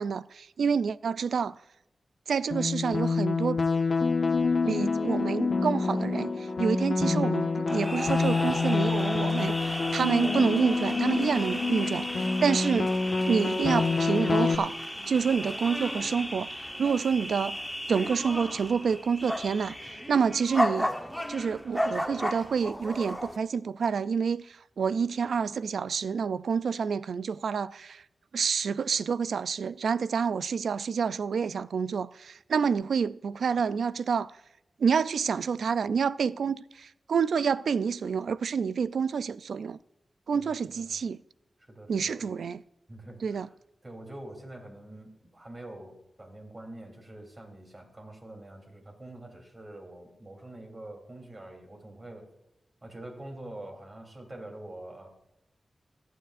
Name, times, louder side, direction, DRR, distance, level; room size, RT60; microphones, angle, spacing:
voice 1, 0.0-1.5 2.3-3.6 4.7-12.9 13.3-17.6 17.9-19.7 20.1-20.9 21.3-24.4 24.8-28.0 28.3-34.3 34.8-39.8 40.3-41.2 41.9-42.6 43.2-43.5, right 6 dB, 90° right, 0.3 m, -28 dB
sound 1, 2.5-14.5, left 4 dB, 60° left, 1.1 m, -27 dB
sound 2, 7.7-23.4, equal, 5° left, 1.0 m, -34 dB
voice 2, 40.3-40.9 41.6-42.3 42.9-43.5 43.8-52.3 52.8-55.1, right 1 dB, 35° right, 3.3 m, -45 dB
24.5 x 9.4 x 2.5 m
cardioid pair, 70°, 0 cm